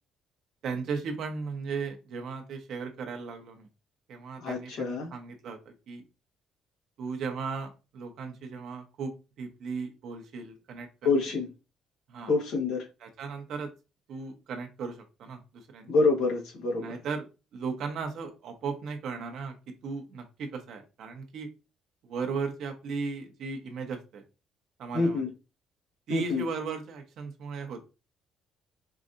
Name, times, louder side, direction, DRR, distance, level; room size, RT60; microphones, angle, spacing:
voice 1, 0.6-3.7 4.1-6.0 7.0-11.1 12.1-12.3 13.0-13.7 14.1-15.9 16.7-19.6 19.8-21.5 22.0-24.2 24.8-25.2 26.1-27.8, right 5 dB, 65° right, 0.9 m, -36 dB
voice 2, 4.4-5.1 11.0-11.5 12.3-12.9 15.9-16.9 24.9-25.3 26.1-26.4, left 3 dB, 85° left, 1.2 m, -26 dB
4.8 x 2.6 x 2.5 m
cardioid pair, 130°, 0 cm